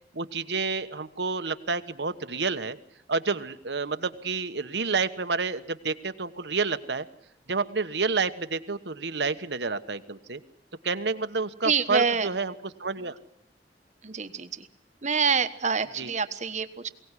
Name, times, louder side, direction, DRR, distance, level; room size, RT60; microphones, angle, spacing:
voice 1, 0.1-2.8 3.1-7.1 7.5-10.4 10.8-12.5 12.8-13.1 16.0-16.1, right 4 dB, 75° right, 10 dB, 1.3 m, -29 dB
voice 2, 11.6-12.3 14.0-14.7 15.0-16.9, right 5 dB, 45° right, 10 dB, 1.3 m, -26 dB
22.5 x 18.0 x 9.8 m, 0.76 s
head